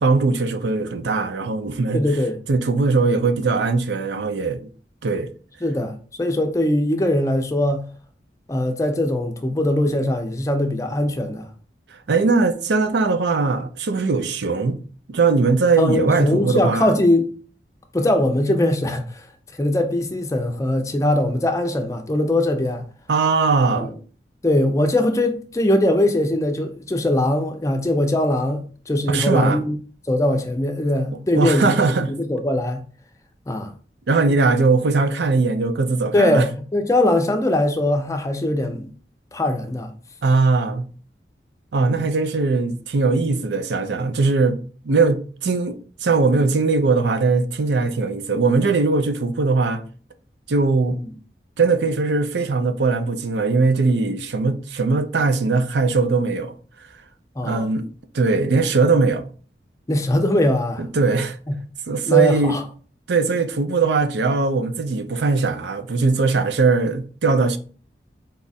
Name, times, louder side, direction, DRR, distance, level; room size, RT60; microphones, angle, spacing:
voice 1, 0.0-2.0 2.5-4.6 5.0-5.3 11.9-14.8 15.1-16.9 23.1-23.9 29.1-29.6 31.4-32.1 34.1-36.4 40.2-40.9 41.7-44.6 44.8-49.8 50.5-51.0 51.6-56.5 57.4-57.8 58.1-59.2 60.8-61.4 61.9-62.6 63.1-67.6, right 4 dB, 80° right, 0.5 m, -20 dB
voice 2, 1.9-2.4 5.6-7.8 8.5-11.5 15.8-17.3 17.9-19.2 19.6-22.8 23.7-23.9 24.4-29.8 30.1-31.8 32.1-32.8 33.5-33.7 36.1-38.9 39.3-39.9 41.8-42.0 50.9-51.1 57.4-57.7 59.9-60.8 62.1-62.6, left 1 dB, 15° left, 0.4 m, -21 dB
4.0 x 2.4 x 4.0 m
head